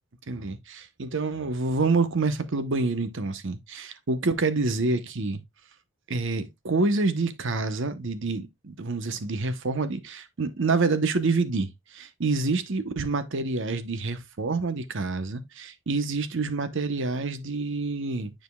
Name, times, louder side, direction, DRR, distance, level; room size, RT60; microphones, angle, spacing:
voice 1, 0.3-5.4 6.1-18.3, right 3 dB, 65° right, 0.8 m, -27 dB
9.3 x 5.1 x 2.2 m
head